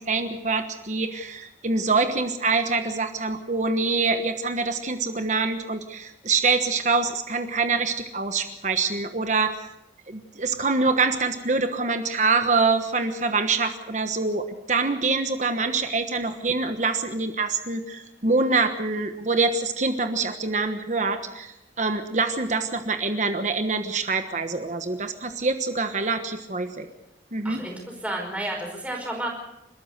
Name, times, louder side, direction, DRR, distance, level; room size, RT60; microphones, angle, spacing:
voice 1, 0.0-9.6 10.1-26.9 27.3-27.6, right 4 dB, 40° right, 7 dB, 1.3 m, -25 dB
voice 2, 27.4-29.3, right 1 dB, 5° right, 0 dB, 5.1 m, -31 dB
29.5 x 13.5 x 6.7 m, 0.89 s
head